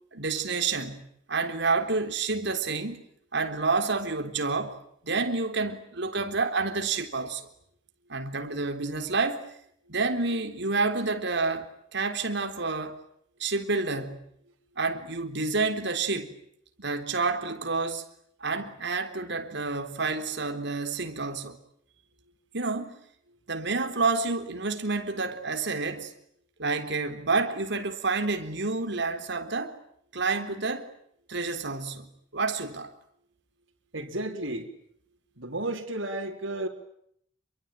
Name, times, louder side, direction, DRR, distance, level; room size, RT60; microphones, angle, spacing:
voice 1, 0.1-3.0 3.3-4.8 5.0-7.5 8.1-9.5 9.9-13.0 13.4-14.3 14.8-16.3 16.8-18.0 18.4-21.6 22.5-23.0 23.5-26.1 26.6-29.8 30.1-30.9 31.3-32.9, right 3 dB, 65° right, 3.7 m, -29 dB
voice 2, 33.9-34.7 35.4-36.7, right 1 dB, 85° right, 4.3 m, -32 dB
28.0 x 23.0 x 9.1 m
head